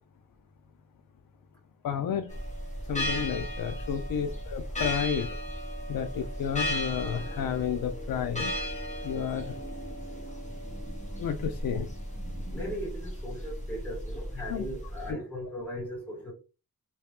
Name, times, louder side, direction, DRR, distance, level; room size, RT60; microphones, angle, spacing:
voice 1, 1.8-2.3 2.9-5.3 5.9-8.5 9.0-9.5 11.2-11.9 14.5-14.6 15.1-15.2, left 8 dB, 75° left, 0.5 m, -31 dB
sound 1, 2.3-15.1, equal, 20° left, 1.1 m, -35 dB
sound 2, 6.3-12.7, right 1 dB, 20° right, 1.3 m, -48 dB
voice 2, 12.5-16.3, equal, 5° left, 1.7 m, -38 dB
3.0 x 2.8 x 3.4 m
wide cardioid pair, 160°, 33 cm